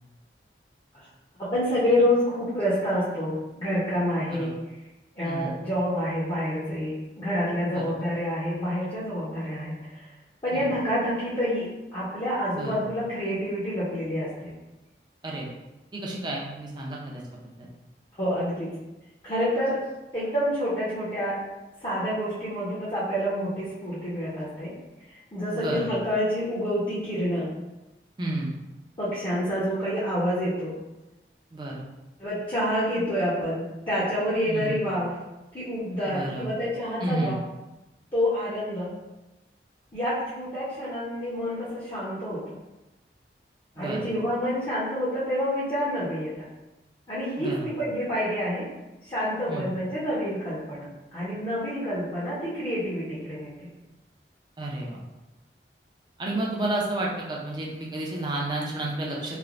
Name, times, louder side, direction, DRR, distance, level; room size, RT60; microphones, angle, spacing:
voice 1, 1.4-4.5 5.2-9.7 10.4-14.5 18.2-18.7 19.2-19.8 20.1-21.4 21.8-24.7 25.3-27.5 29.0-30.7 32.2-35.1 35.5-37.3 38.1-38.9 39.9-42.4 43.8-46.5 47.1-48.7 49.1-53.5, equal, 30° left, -9 dB, 0.6 m, -28 dB
voice 2, 5.2-5.6 7.7-7.8 10.5-10.7 12.5-12.9 15.2-15.5 15.9-17.2 17.6-17.7 25.5-25.9 28.2-28.5 31.5-31.8 34.5-34.8 36.0-36.5 37.0-37.3 43.8-44.1 47.4-47.7 49.5-49.7 54.6-55.0 56.2-59.4, right 2 dB, 25° right, -3 dB, 0.4 m, -31 dB
3.2 x 2.1 x 2.4 m, 1.0 s
head